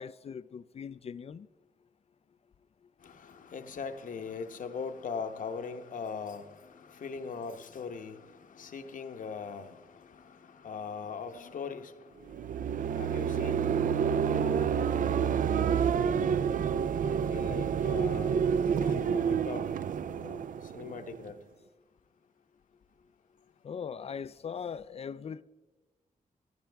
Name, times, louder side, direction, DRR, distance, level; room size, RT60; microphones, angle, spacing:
voice 1, 0.0-1.5 23.6-25.4, left 7 dB, 45° left, 0.4 m, -40 dB
voice 2, 3.0-12.1 13.0-13.7 14.3-16.4 17.0-18.5 18.8-19.7 20.1-20.5 20.7-21.4, left 5 dB, 70° left, 1.0 m, -41 dB
sound 1, 12.3-21.3, right 7 dB, 70° right, 0.4 m, -29 dB
17.5 x 14.0 x 3.4 m
wide cardioid pair, 155°, 14 cm